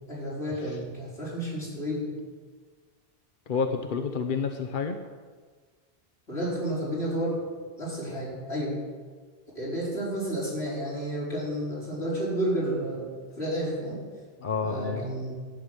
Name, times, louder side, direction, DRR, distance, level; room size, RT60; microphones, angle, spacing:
voice 1, 0.1-2.1 6.3-7.4 7.8-8.8 9.5-13.1 13.4-14.0 14.6-15.4, right 1 dB, 75° left, -7 dB, 5.2 m, -31 dB
voice 2, 3.5-5.0 14.4-15.0, left 5 dB, 55° left, 5 dB, 0.9 m, -29 dB
11.5 x 9.2 x 6.5 m, 1.5 s
omnidirectional pair, 1.1 m